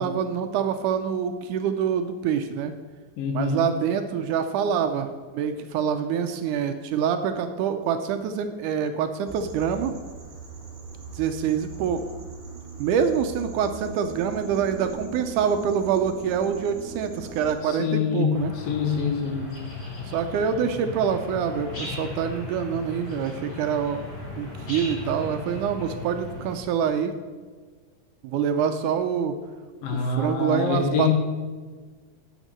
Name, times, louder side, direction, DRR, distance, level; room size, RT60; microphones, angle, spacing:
voice 1, 0.0-2.7 3.3-9.9 11.2-12.0 12.8-18.5 20.1-24.0 24.4-27.1 28.2-29.4 29.9-31.1, right 7 dB, 75° right, 8 dB, 2.0 m, -26 dB
voice 2, 3.2-3.7 17.6-19.5 29.8-31.1, left 6 dB, 85° left, 3 dB, 3.1 m, -25 dB
sound 1, 9.3-17.6, right 4 dB, 40° right, 1.0 m, -40 dB
sound 2, 18.3-26.6, left 3 dB, 40° left, 4.4 m, -36 dB
9.0 x 7.5 x 6.6 m, 1.5 s
omnidirectional pair, 3.9 m